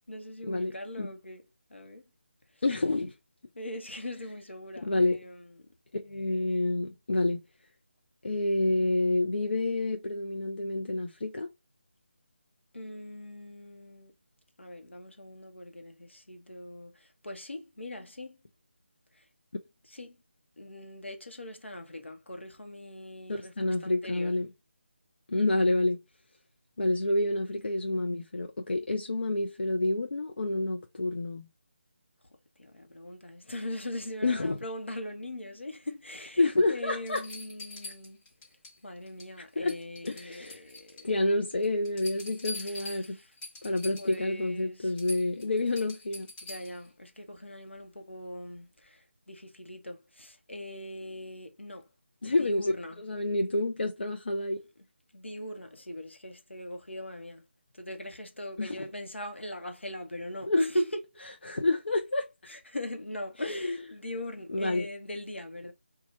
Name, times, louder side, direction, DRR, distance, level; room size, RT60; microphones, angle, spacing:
voice 1, 0.1-1.4 1.7-2.0 3.5-5.5 12.7-14.1 14.6-18.4 19.1-19.2 19.9-20.2 20.6-24.3 32.6-36.4 36.7-38.2 38.8-41.3 42.5-43.3 44.0-44.9 46.4-51.9 52.3-53.0 55.1-57.4 57.7-61.0 62.5-65.7, left 1 dB, 80° left, 0.9 m, -40 dB
voice 2, 2.6-3.1 4.8-5.2 5.9-7.4 8.2-11.5 23.3-24.5 25.3-26.0 26.8-31.5 34.2-34.6 36.4-37.2 39.6-39.8 40.1-40.6 41.0-43.2 43.6-46.3 52.2-54.6 58.6-58.9 60.5-60.6 61.4-62.3 63.4-63.8 64.5-64.9, left 2 dB, 65° left, 0.6 m, -28 dB
sound 1, 36.3-36.4 37.1-38.8 39.1-39.4 39.7-41.1 41.5-44.2 44.6-44.7 45.0-46.9 48.6-48.7, left 2 dB, 15° left, 0.7 m, -44 dB
3.0 x 2.3 x 4.2 m
figure-of-eight pair, 155°, 6 cm